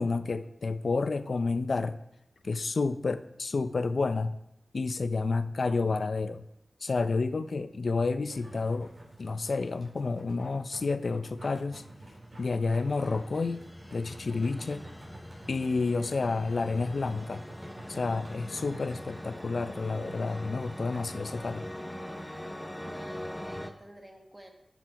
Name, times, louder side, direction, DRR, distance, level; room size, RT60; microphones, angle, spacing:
voice 1, 0.0-2.0 2.4-4.4 4.7-6.4 6.8-8.9 9.2-11.8 12.4-13.6 13.9-14.8 15.5-17.4 17.9-21.6, left 3 dB, 65° left, 12 dB, 0.4 m, -30 dB
sound 1, 8.3-21.6, right 1 dB, 40° right, 3.2 m, -50 dB
sound 2, 12.1-23.7, left 1 dB, 10° left, 0.6 m, -43 dB
voice 2, 22.8-24.5, right 1 dB, 15° right, 2 dB, 1.4 m, -48 dB
10.5 x 6.1 x 4.7 m, 0.80 s
wide cardioid pair, 100°, 0 cm